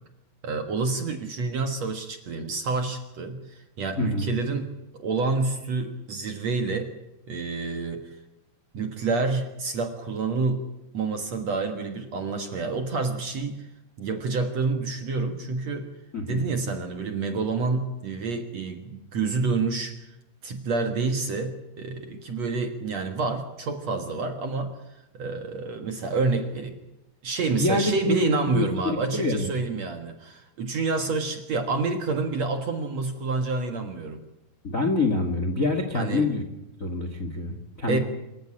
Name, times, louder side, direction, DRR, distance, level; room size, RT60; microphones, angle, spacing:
voice 1, 0.4-4.7 4.9-6.9 7.3-8.2 8.7-13.7 14.0-15.9 16.3-20.1 20.4-24.7 25.1-26.8 27.2-34.2 35.9-36.3 37.9-38.0, right 4 dB, 55° right, 6 dB, 2.1 m, -28 dB
voice 2, 4.0-4.3 16.1-16.5 27.6-29.5 34.6-36.4 36.8-38.0, left 2 dB, 35° left, 7 dB, 1.2 m, -26 dB
26.5 x 14.5 x 8.8 m, 0.94 s
omnidirectional pair, 4.7 m